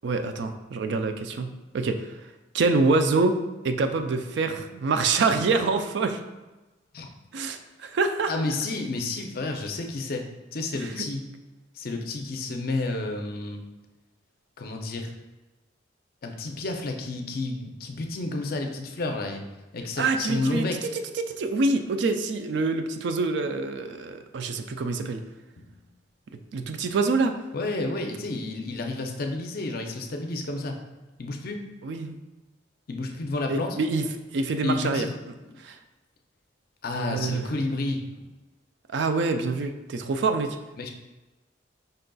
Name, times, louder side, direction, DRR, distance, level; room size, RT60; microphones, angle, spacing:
voice 1, 0.0-2.1 2.5-3.4 3.6-6.2 7.3-8.3 10.8-10.9 20.0-20.6 21.2-25.2 26.5-27.3 31.8-32.1 33.5-34.0 34.3-35.1 35.6-35.8 36.9-37.4 38.9-40.6, right 3 dB, 65° right, 7 dB, 0.4 m, -26 dB
voice 2, 8.3-10.3 10.5-11.3 11.7-13.6 14.6-15.1 16.2-19.4 19.7-20.9 25.6-25.8 27.5-30.8 31.2-31.6 32.9-33.8 34.6-35.1 35.5-35.6 36.8-38.0 40.8-40.9, left 2 dB, 55° left, 3 dB, 0.5 m, -30 dB
5.4 x 3.9 x 2.2 m, 1.1 s
head